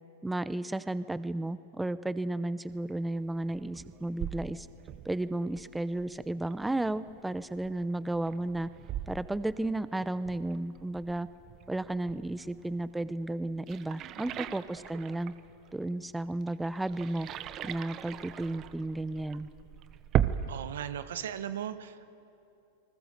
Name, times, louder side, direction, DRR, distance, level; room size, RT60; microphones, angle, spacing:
voice 1, 0.2-4.7 5.0-8.7 9.1-11.3 11.7-15.3 15.7-17.3 17.6-19.5, right 2 dB, 5° right, 15 dB, 0.7 m, -33 dB
sound 1, 2.7-20.5, right 10 dB, 35° right, 0.9 m, -39 dB
voice 2, 20.5-22.1, right 10 dB, 75° right, 11 dB, 1.3 m, -37 dB
29.0 x 20.5 x 6.7 m, 2.8 s
hypercardioid pair, 115°, 0 cm